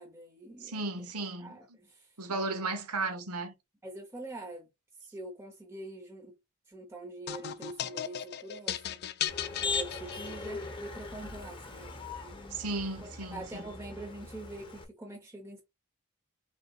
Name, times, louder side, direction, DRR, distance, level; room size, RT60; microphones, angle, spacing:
voice 1, 0.0-0.9 1.4-2.1 3.8-4.7 5.1-6.3 6.7-9.1 9.6-12.6 13.0-15.6, right 2 dB, 10° right, 0.8 m, -45 dB
voice 2, 0.6-1.6 2.2-3.5 12.5-13.6, right 3 dB, 80° right, 1.1 m, -35 dB
sound 1, 7.3-10.6, left 10 dB, 45° left, 0.4 m, -37 dB
Motor vehicle (road), 9.3-14.8, left 4 dB, 25° left, 0.9 m, -39 dB
4.2 x 3.8 x 2.4 m
head